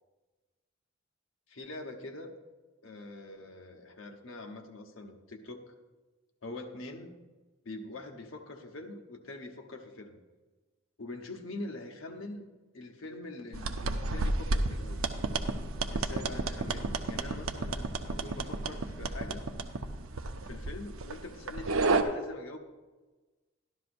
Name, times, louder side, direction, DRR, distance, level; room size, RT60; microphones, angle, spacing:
voice 1, 1.5-2.3 2.8-5.6 6.4-7.2 7.6-10.1 11.0-12.5 12.7-15.1 15.9-19.5 20.4-22.6, left 2 dB, 75° left, 4 dB, 1.0 m, -44 dB
sound 1, 13.5-22.0, right 3 dB, 80° right, 0.7 m, -32 dB
13.0 x 11.5 x 2.6 m, 1.3 s
head